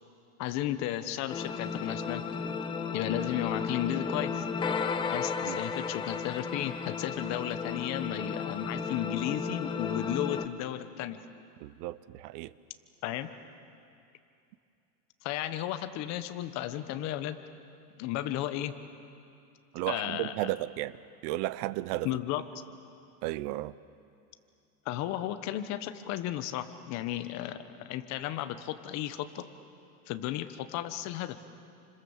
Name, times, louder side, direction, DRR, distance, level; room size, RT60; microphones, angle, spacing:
voice 1, 0.4-2.2 2.9-4.5 5.0-11.2 13.0-13.3 15.2-17.4 18.0-18.7 19.9-20.3 22.0-22.4 24.8-29.4 30.1-31.3, left 13 dB, 35° left, 1.3 m, -34 dB
sound 1, 1.3-10.5, left 5 dB, 10° left, 0.6 m, -34 dB
voice 2, 11.6-12.5 19.7-21.0 21.2-22.1 23.2-23.7, right 17 dB, 35° right, 0.5 m, -33 dB
29.5 x 26.0 x 7.3 m
supercardioid pair, 150°, 45 cm